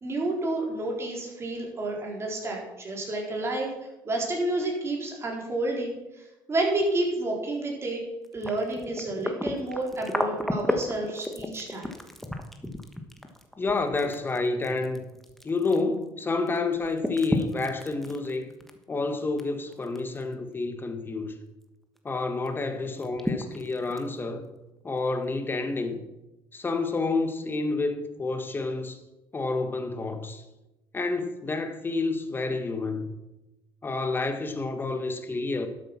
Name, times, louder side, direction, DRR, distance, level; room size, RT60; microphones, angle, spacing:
voice 1, 0.0-3.7 4.0-8.0 8.3-11.9, right 2 dB, 30° right, 4.0 m, -30 dB
sound 1, 8.2-16.2 16.5-19.4 19.7-20.2 20.6-20.7 22.0-22.1 22.5-22.6 23.0-24.2 25.0-25.1, left 1 dB, 5° left, 1.3 m, -33 dB
voice 2, 13.6-15.0 15.4-18.5 18.9-21.3 22.0-24.4 24.8-26.0 26.5-29.0 29.3-30.4 30.9-33.1 33.8-35.7, left 3 dB, 25° left, 1.6 m, -29 dB
12.0 x 8.0 x 6.0 m
cardioid pair, 100°, 9 cm